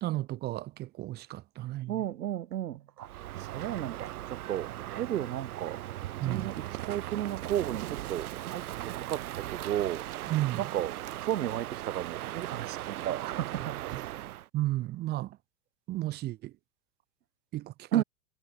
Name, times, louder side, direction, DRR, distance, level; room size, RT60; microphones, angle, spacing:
voice 1, 0.0-2.0 6.2-6.5 10.3-10.7 13.8-14.0 14.5-15.4 15.9-16.5 17.5-18.0, right 16 dB, 20° right, 0.7 m, -33 dB
voice 2, 1.9-3.1 3.4-5.8 6.3-10.0 10.6-10.9 11.2-14.0 17.9-18.0, right 11 dB, 85° right, 1.2 m, -33 dB
Crow, 3.0-14.5, right 14 dB, 70° right, 1.7 m, -38 dB
hypercardioid pair, 130°, 46 cm